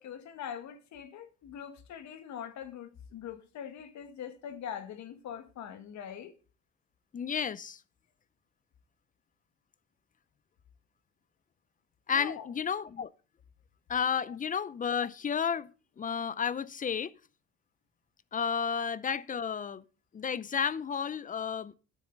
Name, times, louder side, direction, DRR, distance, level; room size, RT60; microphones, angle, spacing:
voice 1, 0.0-6.3 12.1-12.5 14.2-14.4, left 9 dB, 70° left, 1.7 m, -43 dB
voice 2, 7.1-7.8 12.1-13.1 13.9-15.7 16.0-17.1 18.3-19.8 20.1-21.7, left 7 dB, 25° left, 0.5 m, -32 dB
10.0 x 7.0 x 5.3 m
cardioid pair, 110°, 30 cm